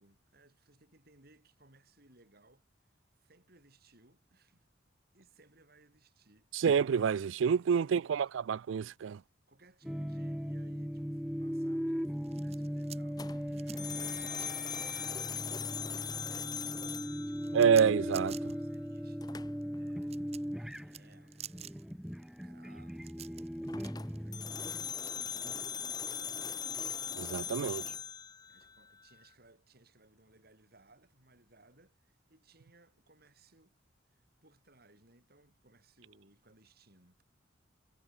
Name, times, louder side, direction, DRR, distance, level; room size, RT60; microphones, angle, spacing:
voice 1, 0.0-2.7 3.1-4.7 5.1-6.5 7.6-8.1 8.8-9.0 9.5-17.7 18.2-23.5 24.1-26.6 28.5-33.7 34.1-37.2, right 2 dB, 55° right, 5.6 m, -64 dB
voice 2, 6.5-9.2 17.5-18.3 27.1-27.8, right 7 dB, 85° right, 0.4 m, -27 dB
sound 1, 9.8-25.0, equal, ahead, 1.0 m, -38 dB
sound 2, 12.0-15.9 16.2-25.1, right 10 dB, 35° right, 0.7 m, -51 dB
sound 3, 13.2-18.2 19.2-19.8 23.7-29.1, left 7 dB, 20° left, 0.6 m, -40 dB
head